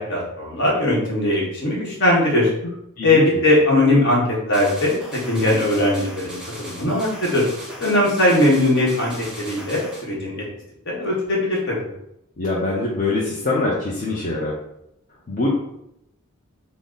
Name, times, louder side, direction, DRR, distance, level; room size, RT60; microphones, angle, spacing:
voice 1, 0.0-2.5 3.0-7.4 7.8-10.4 10.8-11.9, left 1 dB, 55° left, -4 dB, 1.1 m, -20 dB
sound 1, 4.5-10.1, right 1 dB, 5° right, 0.6 m, -38 dB
voice 2, 12.4-14.5 15.3-15.5, left 2 dB, 40° left, -5 dB, 0.6 m, -23 dB
3.8 x 2.0 x 3.7 m, 0.82 s
head